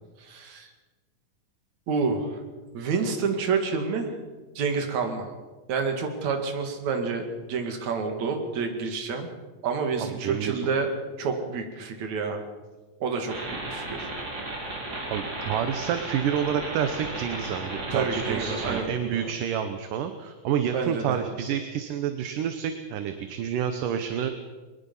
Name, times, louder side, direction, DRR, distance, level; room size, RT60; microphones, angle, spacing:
voice 1, 0.2-0.7 1.9-2.4 2.7-4.1 4.5-5.3 5.7-9.3 9.6-10.9 11.2-12.4 13.0-14.1 17.9-18.9 19.1-19.3 20.7-21.2, right 5 dB, 60° right, 4 dB, 3.4 m, -28 dB
voice 2, 10.0-10.7 15.0-24.3, right 8 dB, 75° right, 8 dB, 2.6 m, -29 dB
sound 1, 13.3-18.8, right 2 dB, 25° right, 4.5 m, -34 dB
22.5 x 21.0 x 5.5 m, 1.3 s
omnidirectional pair, 3.9 m